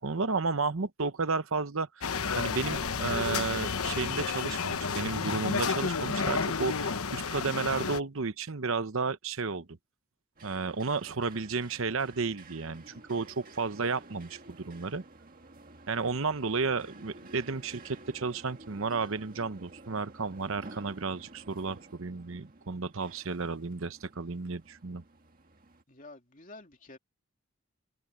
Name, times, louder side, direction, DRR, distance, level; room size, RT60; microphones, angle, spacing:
voice 1, 0.0-9.7 10.4-15.0 15.9-25.0, right 4 dB, 70° right, 0.9 m, -32 dB
sound 1, 2.0-8.0, left 5 dB, 85° left, 1.1 m, -31 dB
sound 2, 10.4-25.8, right 2 dB, 40° right, 1.9 m, -52 dB
voice 2, 12.7-13.0 25.9-27.0, left 2 dB, 35° left, 2.9 m, -51 dB
head